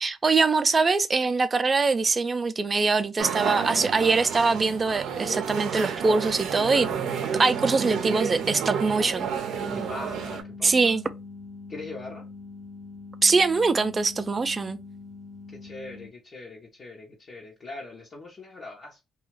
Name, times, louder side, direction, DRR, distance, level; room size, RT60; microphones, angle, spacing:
voice 1, 0.0-6.9 7.4-9.3 10.6-11.1 13.2-14.8, right 4 dB, 35° right, 0.4 m, -23 dB
sound 1, 3.2-10.4, right 7 dB, 80° right, 0.5 m, -31 dB
sound 2, 9.5-16.1, left 4 dB, 5° left, 0.7 m, -43 dB
voice 2, 9.7-11.0 11.7-12.2 15.5-19.0, left 2 dB, 50° left, 0.8 m, -41 dB
2.4 x 2.3 x 3.1 m
cardioid pair, 90°, 0 cm